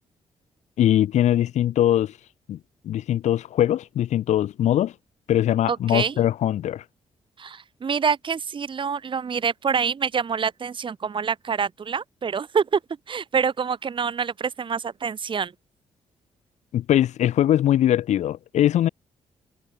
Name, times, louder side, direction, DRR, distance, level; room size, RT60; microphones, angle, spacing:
voice 1, 0.8-2.1 2.5-2.6 2.8-4.9 5.3-6.8 16.7-18.9, left 12 dB, 80° left, 1.7 m, -21 dB
voice 2, 5.7-6.1 7.4-12.8 13.1-15.5, right 6 dB, 45° right, 1.4 m, -26 dB
cardioid pair, 70°, 12 cm